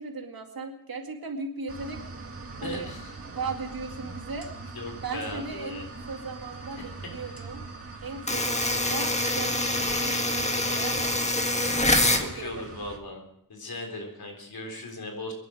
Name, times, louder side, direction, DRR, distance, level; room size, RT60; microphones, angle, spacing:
voice 1, 0.0-2.0 2.6-2.9 3.3-4.5 5.0-7.6 8.0-12.7, right 4 dB, 80° right, 3 dB, 2.2 m, -38 dB
sound 1, 1.7-13.0, right 3 dB, 40° right, 2.0 m, -42 dB
voice 2, 2.6-3.2 4.7-5.9 6.8-7.1 11.7-13.2 13.5-15.3, left 2 dB, 90° left, 3 dB, 3.8 m, -38 dB
sound 2, 8.3-12.3, left 1 dB, 20° left, 1.6 m, -25 dB
24.0 x 11.0 x 4.9 m, 0.74 s
wide cardioid pair, 110°, 35 cm